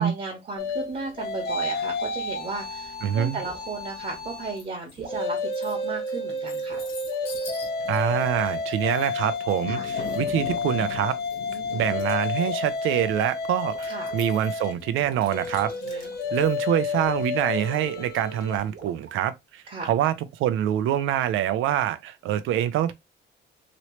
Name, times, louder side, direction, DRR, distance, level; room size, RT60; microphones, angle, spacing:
voice 1, 0.0-6.8 9.7-9.9 11.5-11.9 13.9-14.1 15.7-16.1 19.7-19.9, right 3 dB, 40° right, 1.1 m, -35 dB
sound 1, 0.6-4.6 5.0-18.6, left 3 dB, 55° left, 0.8 m, -31 dB
sound 2, 2.2-2.5 3.4-3.7 5.0-5.3 6.7-8.6 9.2-9.7 10.0-10.4 10.8-11.2 11.5-12.0 12.3-13.2 13.7-14.5 14.9-17.3 17.6-19.1, right 5 dB, 55° right, 1.2 m, -47 dB
voice 2, 3.0-3.4 7.9-11.2 11.7-22.9, right 11 dB, 85° right, 0.5 m, -25 dB
sound 3, 4.6-5.0 5.4-18.6, left 6 dB, 85° left, 1.3 m, -43 dB
3.0 x 2.9 x 3.0 m
cardioid pair, 90°, 20 cm